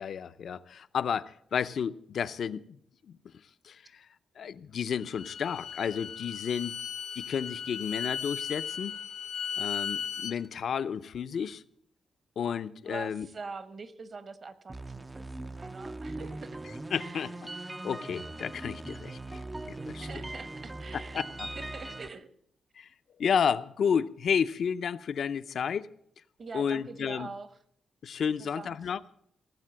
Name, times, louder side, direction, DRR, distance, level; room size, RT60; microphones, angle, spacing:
voice 1, 0.0-2.8 3.1-3.2 3.6-4.1 4.4-6.8 7.2-8.9 9.6-11.6 12.4-13.3 16.9-17.3 17.8-19.4 19.7-20.1 20.9-21.5 22.8-22.9 23.2-25.9 26.5-27.3 28.0-29.0, left 7 dB, 60° left, 0.6 m, -31 dB
Bowed string instrument, 5.0-10.4, left 7 dB, 80° left, 0.9 m, -36 dB
voice 2, 12.8-16.6 17.0-17.3 19.8-21.2 21.6-22.3 26.4-27.5 28.4-28.8, right 4 dB, 40° right, 1.1 m, -44 dB
sound 1, 14.7-22.1, right 2 dB, 15° right, 0.4 m, -40 dB
18.0 x 7.5 x 7.5 m
wide cardioid pair, 135°, 0 cm